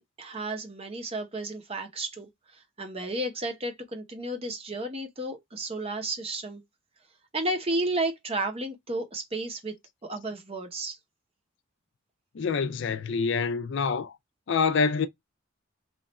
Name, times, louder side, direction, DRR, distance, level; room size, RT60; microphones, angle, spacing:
voice 1, 0.0-2.3 2.8-6.6 7.3-9.7 10.0-11.0, right 2 dB, 30° right, 0.8 m, -32 dB
voice 2, 12.3-14.2 14.5-15.1, left 5 dB, 60° left, 0.4 m, -26 dB
3.1 x 2.4 x 4.1 m
head